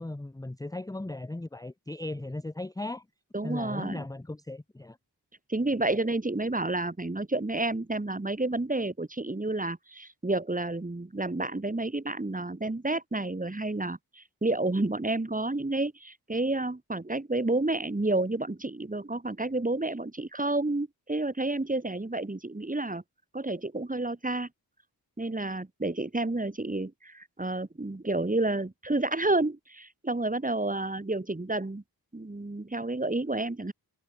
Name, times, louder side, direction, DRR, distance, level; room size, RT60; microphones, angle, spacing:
voice 1, 0.0-3.0 3.4-5.0, left 2 dB, 10° left, 0.8 m, -37 dB
voice 2, 3.3-4.0 5.5-23.0 23.3-24.5 25.2-31.8 32.1-33.7, right 2 dB, 20° right, 2.8 m, -30 dB
wide cardioid pair, 80°, 39 cm